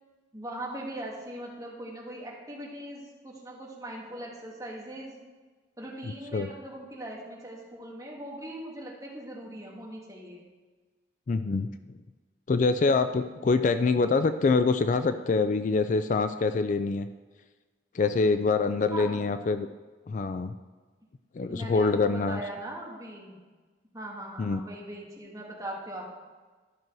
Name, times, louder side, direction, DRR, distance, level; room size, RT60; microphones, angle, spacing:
voice 1, 0.3-5.1 5.8-10.4 18.9-19.2 21.5-23.4 23.9-26.2, right 1 dB, 20° right, -3 dB, 1.9 m, -40 dB
voice 2, 6.0-6.5 11.3-11.7 12.5-17.1 17.9-19.7 20.1-20.5 21.3-22.4 24.4-24.6, left 4 dB, 45° left, 10 dB, 0.3 m, -25 dB
12.5 x 6.2 x 4.6 m, 1.3 s
head